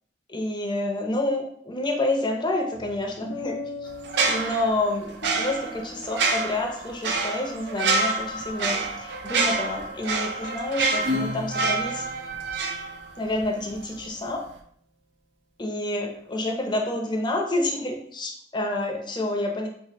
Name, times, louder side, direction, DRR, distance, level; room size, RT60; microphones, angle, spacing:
voice 1, 0.3-3.9 4.3-12.1 13.2-14.4 15.6-19.7, left 2 dB, 25° left, 2 dB, 0.6 m, -28 dB
sound 1, 2.7-7.1, left 3 dB, 75° left, 0.6 m, -40 dB
sound 2, 4.0-13.4 13.7-13.9, right 4 dB, 70° right, 0.5 m, -27 dB
Acoustic guitar / Strum, 11.0-13.9, left 2 dB, 85° right, 0.9 m, -34 dB
3.8 x 2.8 x 2.9 m, 0.65 s
head